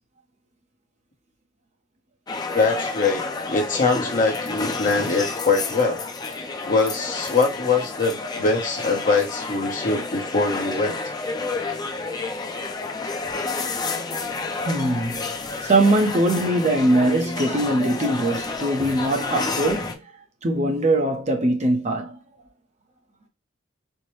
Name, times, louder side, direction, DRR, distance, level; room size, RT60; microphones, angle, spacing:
sound 1, 2.3-20.0, left 3 dB, 20° left, 0.4 m, -30 dB
voice 1, 2.5-6.0 6.6-11.0, left 4 dB, 45° left, 0.9 m, -23 dB
voice 2, 14.6-15.2 15.6-20.1 20.4-22.2, right 1 dB, 35° right, 0.7 m, -21 dB
4.5 x 2.1 x 3.1 m
head